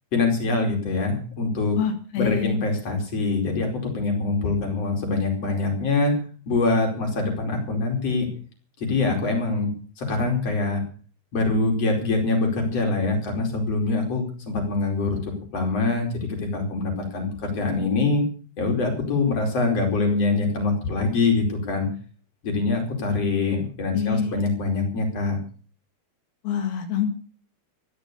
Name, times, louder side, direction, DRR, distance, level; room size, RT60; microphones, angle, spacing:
voice 1, 0.1-1.8 2.2-6.2 6.5-8.3 8.8-9.7 10.0-10.8 11.3-15.2 15.5-18.2 18.6-21.9 22.4-25.4, left 3 dB, 40° left, 2 dB, 5.7 m, -24 dB
voice 2, 1.8-2.5 23.9-24.4 26.5-27.1, left 8 dB, 85° left, 5 dB, 4.0 m, -26 dB
15.0 x 13.0 x 6.9 m, 0.41 s
omnidirectional pair, 4.4 m